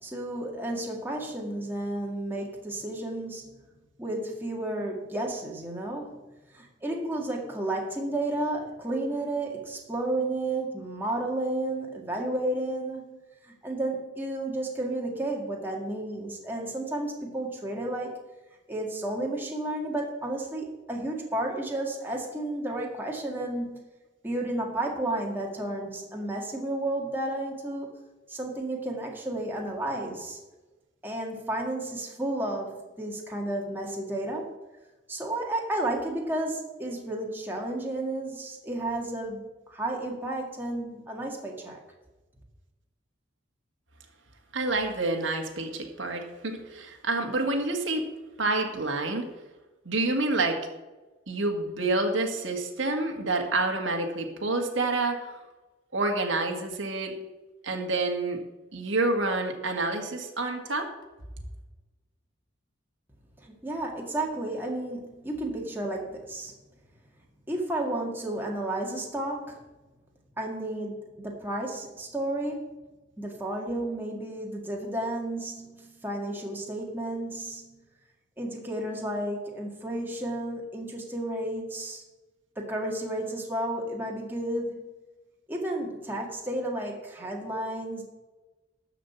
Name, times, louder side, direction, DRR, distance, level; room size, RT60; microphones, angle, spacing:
voice 1, 0.0-3.6 4.0-6.2 6.5-13.2 13.4-18.2 18.7-23.8 24.2-28.0 28.3-30.4 31.0-34.5 35.1-41.8 63.4-66.5 67.5-69.6 70.4-72.7 73.2-77.8 78.4-82.0 82.6-84.8 85.5-88.0, right 1 dB, 10° right, -1 dB, 1.9 m, -32 dB
voice 2, 44.5-48.0 48.4-49.3 49.9-50.6 51.3-55.4 55.9-57.1 57.6-58.4 58.7-60.9, right 2 dB, 80° right, 3 dB, 1.8 m, -28 dB
12.5 x 5.0 x 8.5 m, 1.1 s
head